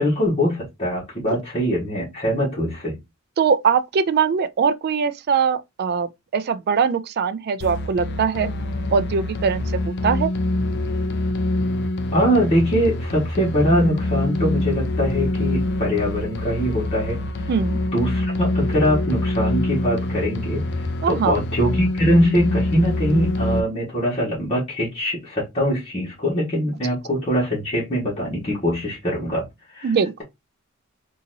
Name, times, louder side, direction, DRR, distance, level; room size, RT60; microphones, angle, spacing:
voice 1, 0.0-3.0 12.1-17.2 17.9-20.6 21.1-29.5 29.7-30.2, equal, 25° left, 1.5 m, -22 dB
voice 2, 3.4-8.5 8.9-10.3 17.5-17.8 21.0-21.3 29.8-30.2, right 6 dB, 50° right, 0.3 m, -21 dB
sound 1, 7.6-23.6, left 2 dB, 55° left, 0.5 m, -25 dB
3.9 x 2.8 x 2.6 m
head